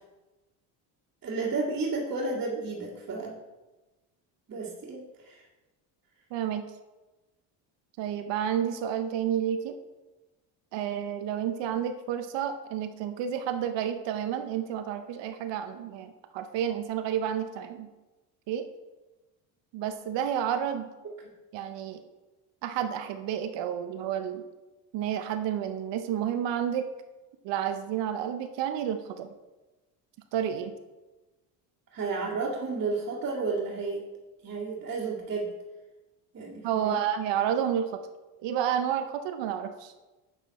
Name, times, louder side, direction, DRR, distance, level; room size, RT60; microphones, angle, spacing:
voice 1, 1.2-3.4 4.5-5.4 31.9-34.0 34.4-35.5 36.3-37.0, right 3 dB, 35° right, -8 dB, 2.3 m, -32 dB
voice 2, 6.3-6.6 8.0-9.8 10.7-17.9 18.5-18.6 19.7-20.9 21.5-22.0 22.6-24.4 24.9-26.9 27.4-29.3 30.3-30.7 36.6-37.9 38.4-39.9, right 9 dB, 70° right, 8 dB, 0.8 m, -30 dB
8.3 x 7.2 x 4.2 m, 1.1 s
supercardioid pair, 95°, 46 cm